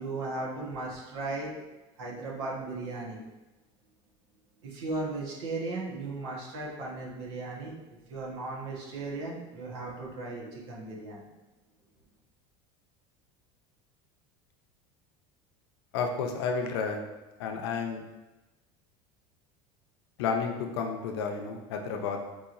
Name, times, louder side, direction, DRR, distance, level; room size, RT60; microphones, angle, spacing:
voice 1, 0.0-1.5 2.0-3.2 4.6-7.7 8.1-11.3, right 3 dB, 80° right, -4 dB, 1.1 m, -36 dB
voice 2, 15.9-17.0 17.4-18.0 20.2-22.2, left 5 dB, 85° left, 3 dB, 0.6 m, -31 dB
4.6 x 2.9 x 2.5 m, 1.1 s
cardioid pair, 180°, 13 cm